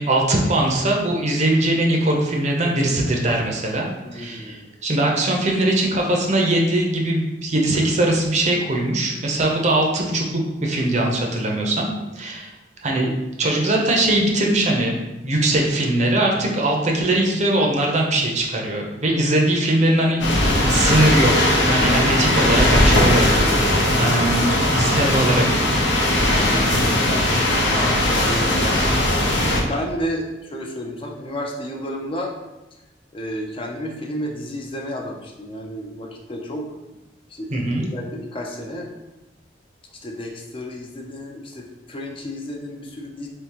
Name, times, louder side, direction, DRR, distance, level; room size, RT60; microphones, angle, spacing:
voice 1, 0.0-12.5 12.8-13.1 13.4-23.5 24.0-25.4 37.5-37.8, right 1 dB, 40° right, 1 dB, 0.6 m, -21 dB
voice 2, 4.0-4.7 23.9-24.7 26.3-29.0 29.7-32.3 33.1-36.7 37.3-38.9 40.0-43.3, equal, 30° left, 0 dB, 0.5 m, -32 dB
sound 1, 20.2-29.6, left 1 dB, 90° left, 0.8 m, -18 dB
3.6 x 3.3 x 2.9 m, 1.0 s
head